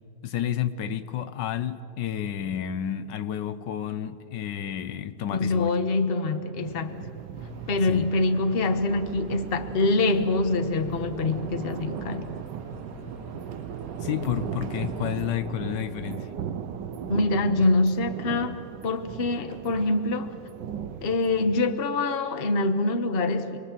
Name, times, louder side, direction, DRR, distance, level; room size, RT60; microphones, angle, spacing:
voice 1, 0.2-5.7 7.9-8.1 14.0-16.3, left 10 dB, 80° left, 12 dB, 1.5 m, -30 dB
voice 2, 5.3-7.0 7.7-12.3 17.1-18.6 18.8-20.3 21.0-23.6, left 2 dB, 35° left, 8 dB, 1.2 m, -25 dB
sound 1, 6.6-21.8, right 8 dB, 90° right, 1.5 m, -38 dB
sound 2, 7.3-15.4, right 4 dB, 55° right, 2.2 m, -43 dB
27.5 x 21.0 x 7.5 m, 2.8 s
omnidirectional pair, 1.9 m